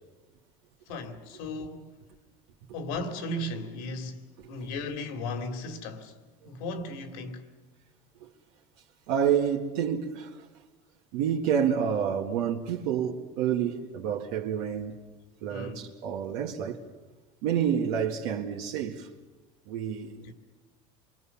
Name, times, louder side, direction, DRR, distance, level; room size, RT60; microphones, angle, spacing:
voice 1, 0.9-2.0 2.7-6.2 6.4-7.5 15.5-15.9 20.1-20.3, left 2 dB, 80° left, 2.8 m, -36 dB
voice 2, 9.1-10.5 11.1-15.0 15.4-16.8 17.4-19.1 19.7-20.1, right 8 dB, 80° right, 2.0 m, -28 dB
28.0 x 23.5 x 7.2 m
cardioid pair, 135°, 17 cm